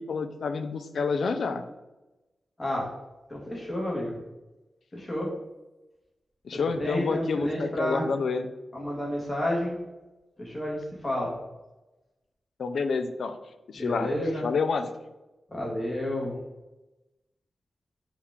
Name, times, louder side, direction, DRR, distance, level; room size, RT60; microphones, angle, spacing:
voice 1, 0.0-1.6 6.4-8.5 12.6-13.4 13.7-14.1 14.4-14.9, left 4 dB, 75° left, 9 dB, 0.3 m, -28 dB
voice 2, 3.3-4.2 4.9-5.3 6.8-8.1 8.7-9.8 10.4-11.3 13.7-14.4 15.5-16.3, left 1 dB, 20° left, -3 dB, 1.2 m, -30 dB
4.5 x 2.4 x 3.4 m, 1.0 s
wide cardioid pair, 110°, 0 cm